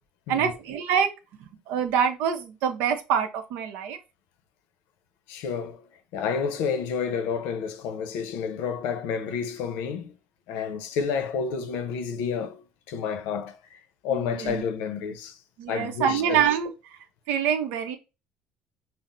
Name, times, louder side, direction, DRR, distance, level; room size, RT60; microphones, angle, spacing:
voice 1, 0.3-1.1 1.7-4.0 14.1-14.6 15.6-16.7 17.3-18.0, right 8 dB, 80° right, 0.7 m, -25 dB
voice 2, 5.3-5.8 6.1-10.1 10.5-12.6 12.9-13.6 14.0-15.4 15.7-16.4, left 6 dB, 85° left, 0.6 m, -30 dB
5.7 x 2.0 x 2.5 m
cardioid pair, 130°, 3 cm